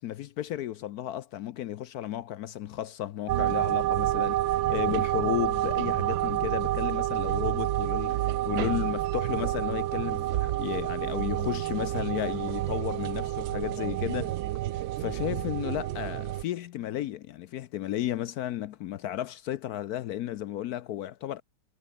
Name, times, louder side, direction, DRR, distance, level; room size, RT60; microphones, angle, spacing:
voice 1, 0.0-14.4 15.0-21.4, left 12 dB, 70° left, 0.9 m, -33 dB
sound 1, 3.3-16.4, right 15 dB, 85° right, 1.5 m, -29 dB
omnidirectional pair, 2.1 m